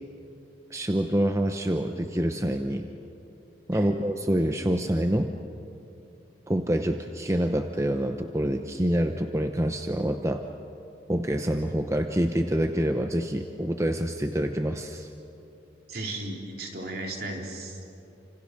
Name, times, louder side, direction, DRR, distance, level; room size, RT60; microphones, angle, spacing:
voice 1, 0.7-2.9 3.7-5.3 6.5-10.4 11.1-15.1, right 1 dB, 15° right, 5 dB, 0.8 m, -26 dB
voice 2, 15.9-17.8, right 2 dB, 55° right, 1 dB, 3.7 m, -35 dB
29.0 x 27.0 x 6.7 m, 2.8 s
head